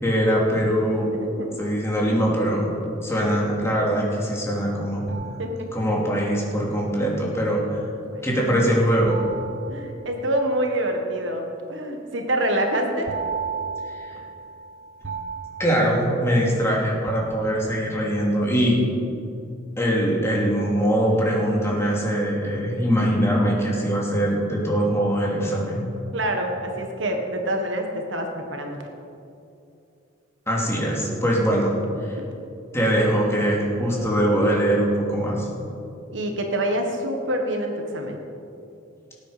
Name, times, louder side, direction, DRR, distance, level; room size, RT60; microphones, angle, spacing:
voice 1, 0.0-1.1 1.6-2.7 3.0-5.1 5.7-7.8 8.2-9.2 13.8-14.1 15.6-18.8 19.8-25.9 30.5-31.7 32.0-32.2 32.7-35.4, equal, 15° left, -3 dB, 2.9 m, -22 dB
voice 2, 1.1-1.6 2.7-2.8 3.2-3.4 5.1-5.7 8.0-8.2 9.7-13.1 26.1-28.8 36.1-38.2, right 1 dB, 70° right, 3 dB, 1.6 m, -26 dB
sound 1, 5.1-6.3 9.1-10.7 13.1-16.6 17.1-18.0, right 5 dB, 90° right, 1.2 m, -35 dB
18.5 x 9.3 x 5.2 m, 2.6 s
head